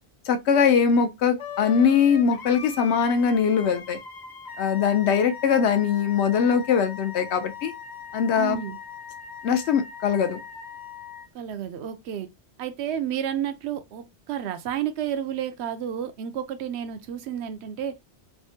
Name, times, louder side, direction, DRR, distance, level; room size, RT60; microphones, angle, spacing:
voice 1, 0.3-4.0 4.6-7.7 8.1-8.6 9.4-10.4, left 7 dB, 80° left, 0.9 m, -21 dB
Wind instrument woodwind instrument, 1.4-11.3, left 6 dB, 45° left, 0.7 m, -40 dB
voice 2, 8.4-8.8 11.3-12.3 12.6-18.0, right 9 dB, 75° right, 0.8 m, -31 dB
3.5 x 2.1 x 2.6 m
omnidirectional pair, 1.1 m